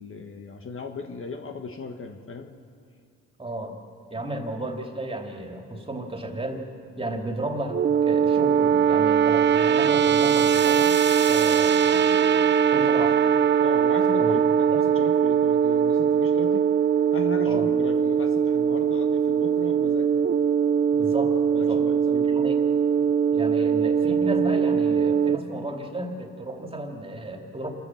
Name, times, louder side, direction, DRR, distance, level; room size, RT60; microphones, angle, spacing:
voice 1, 0.0-2.5 4.4-4.5 13.6-16.7 17.1-20.1 21.5-22.1, left 4 dB, 45° left, 5 dB, 1.6 m, -36 dB
voice 2, 3.4-3.8 4.1-6.7 7.0-10.9 11.3-13.2 14.2-14.3 14.7-14.8 17.4-17.7 20.9-21.8 22.1-22.6 23.3-27.7, right 1 dB, 20° right, 3 dB, 2.8 m, -33 dB
sound 1, 7.7-25.4, right 7 dB, 35° right, 0.7 m, -21 dB
27.5 x 13.5 x 7.3 m, 2.4 s
cardioid pair, 90°, 30 cm